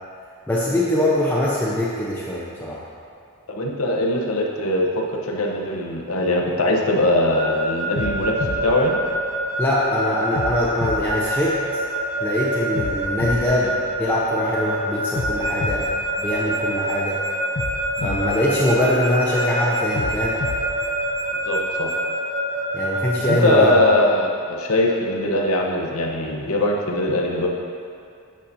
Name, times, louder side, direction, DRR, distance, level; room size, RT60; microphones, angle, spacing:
voice 1, 0.5-2.8 9.6-11.6 12.2-15.9 16.2-17.2 18.0-20.4 22.7-23.8, left 1 dB, 10° left, -7 dB, 0.7 m, -22 dB
voice 2, 3.5-9.0 18.0-18.2 21.5-21.9 23.2-27.5, left 1 dB, 75° left, 0 dB, 0.9 m, -21 dB
sound 1, 7.0-7.3 8.0-9.7 10.4-12.1 12.8-14.5 15.2-16.9 17.6-19.3 20.0-21.7, left 3 dB, 50° left, 0.5 m, -32 dB
Keyboard (musical) / Alarm, 7.3-23.9, right 2 dB, 35° right, 1.8 m, -27 dB
sound 2, 15.4-22.0, right 1 dB, 15° right, 1.8 m, -33 dB
8.4 x 7.0 x 2.7 m, 2.4 s
head